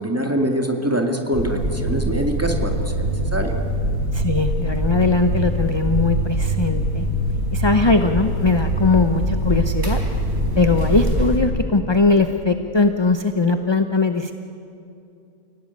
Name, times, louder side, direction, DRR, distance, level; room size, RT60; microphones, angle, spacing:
voice 1, 0.0-3.5, equal, 10° right, 3 dB, 2.1 m, -24 dB
sound 1, 1.3-11.4, right 1 dB, 50° right, 4.3 m, -23 dB
voice 2, 4.1-7.0 7.5-10.0 10.6-14.3, left 3 dB, 25° left, 7 dB, 0.7 m, -20 dB
29.5 x 17.5 x 9.6 m, 2.7 s
omnidirectional pair, 1.5 m